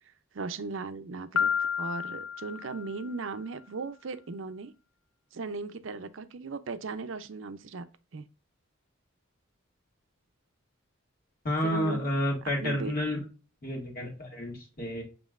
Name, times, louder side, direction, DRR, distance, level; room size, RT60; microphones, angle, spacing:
voice 1, 0.3-4.7 5.3-7.8 8.1-8.3 11.6-12.1 12.6-12.9, right 4 dB, 65° right, 0.5 m, -37 dB
Piano, 1.4-3.3, left 7 dB, 85° left, 0.4 m, -31 dB
voice 2, 11.4-13.2 13.6-15.0, left 1 dB, 45° left, 1.9 m, -30 dB
7.2 x 3.1 x 2.4 m
head